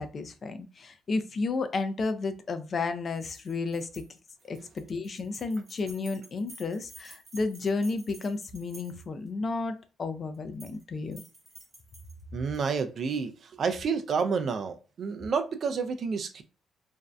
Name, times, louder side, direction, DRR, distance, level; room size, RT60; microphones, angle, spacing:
voice 1, 0.0-4.1 4.4-11.2, left 3 dB, 45° left, 0.4 m, -32 dB
sound 1, 3.2-9.3 10.3-10.8 11.1-12.6, right 2 dB, 35° right, 1.0 m, -52 dB
voice 2, 12.3-16.4, right 5 dB, 55° right, 0.4 m, -30 dB
2.5 x 2.1 x 2.3 m
cardioid pair, 90°, 0 cm